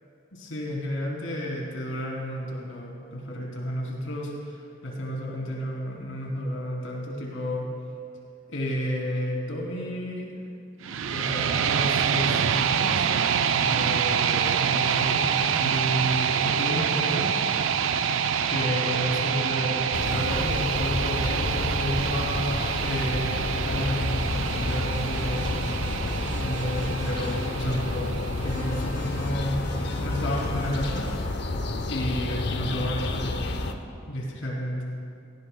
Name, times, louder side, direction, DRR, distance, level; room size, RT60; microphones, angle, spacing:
voice 1, 0.3-7.7 8.5-10.4 10.8-13.1 13.6-17.3 18.5-28.1 28.4-29.5 30.0-31.1 31.9-33.4 34.1-34.8, equal, 80° left, -2 dB, 2.9 m, -31 dB
sound 1, 10.8-28.8, right 7 dB, 75° right, 0.4 m, -26 dB
sound 2, 19.9-33.7, left 2 dB, 55° left, 0.7 m, -30 dB
sound 3, 24.1-27.5 28.4-31.2, left 1 dB, 15° left, 3.4 m, -41 dB
18.0 x 16.5 x 2.2 m, 2.5 s
head